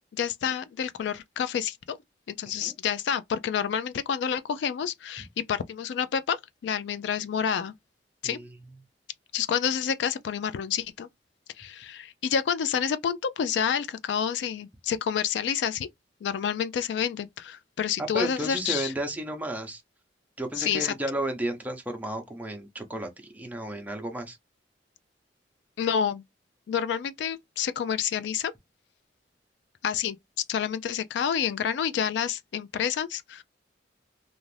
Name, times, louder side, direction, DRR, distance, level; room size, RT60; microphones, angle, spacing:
voice 1, 0.1-2.0 2.3-7.7 8.2-8.4 9.3-11.1 11.6-15.9 16.2-18.9 20.6-20.9 25.8-26.2 26.7-28.5 29.8-30.2 30.5-33.4, left 8 dB, 75° left, 0.3 m, -29 dB
voice 2, 8.2-8.5 18.0-19.8 20.4-24.4, right 1 dB, 10° right, 0.6 m, -33 dB
2.5 x 2.4 x 3.2 m
head